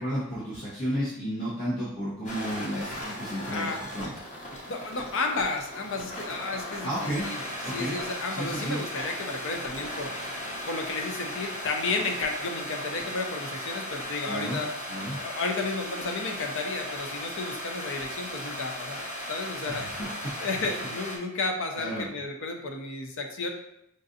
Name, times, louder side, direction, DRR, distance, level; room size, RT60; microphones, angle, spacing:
voice 1, 0.0-4.1 6.8-7.3 7.6-7.9 8.3-8.8 14.2-15.2 19.7-20.1 21.7-22.1, equal, 85° left, -11 dB, 1.2 m, -32 dB
sound 1, 2.2-21.2, equal, 35° left, 0.8 m, -37 dB
voice 2, 4.7-7.4 7.7-10.1 10.7-14.7 15.2-19.0 19.3-19.8 20.4-23.5, left 3 dB, 60° left, 4 dB, 0.5 m, -32 dB
5.1 x 2.5 x 2.6 m, 0.80 s
head